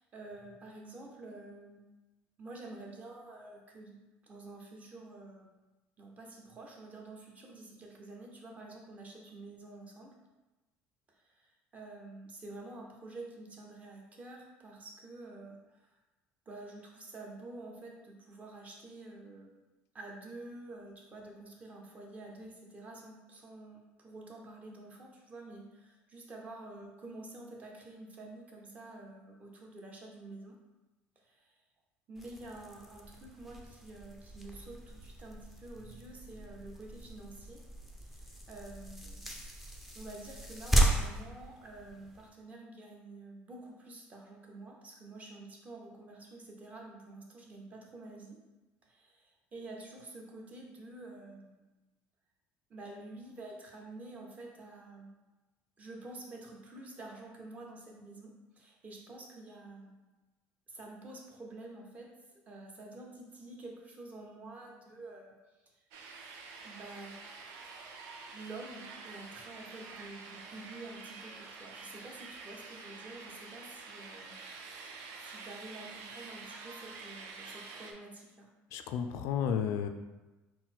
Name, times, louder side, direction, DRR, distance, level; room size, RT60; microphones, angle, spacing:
voice 1, 0.0-1.8 2.4-5.5 6.0-10.1 11.2-15.9 16.5-19.5 19.9-30.6 31.2-31.5 32.1-37.6 38.1-39.2 39.9-48.4 48.8-51.7 52.7-55.1 55.8-59.9 60.7-62.1 62.5-65.3 66.6-67.1 68.3-74.3 75.2-78.5, right 2 dB, 30° right, 0 dB, 0.8 m, -49 dB
sound 1, 32.2-42.3, right 1 dB, 5° right, 0.5 m, -36 dB
sound 2, 65.9-77.9, right 4 dB, 80° right, 0.5 m, -48 dB
voice 2, 78.7-79.9, left 8 dB, 70° left, 7 dB, 0.3 m, -32 dB
4.0 x 2.1 x 4.2 m, 1.1 s
cardioid pair, 130°, 5 cm